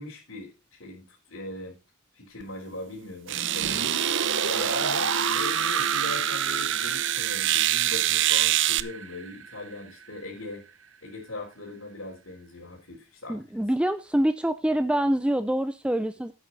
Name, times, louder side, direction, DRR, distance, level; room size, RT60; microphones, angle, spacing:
voice 1, 0.0-1.7 2.1-4.0 4.4-10.6 11.0-13.6, left 2 dB, 85° left, -5 dB, 4.2 m, -40 dB
sound 1, 2.4-2.5 3.3-8.8, right 14 dB, 65° right, 0.6 m, -26 dB
sound 2, 3.3-10.2, right 5 dB, 85° right, 1.1 m, -31 dB
voice 2, 13.3-16.3, right 1 dB, 5° right, 12 dB, 0.5 m, -25 dB
12.5 x 9.1 x 4.1 m, 0.29 s
head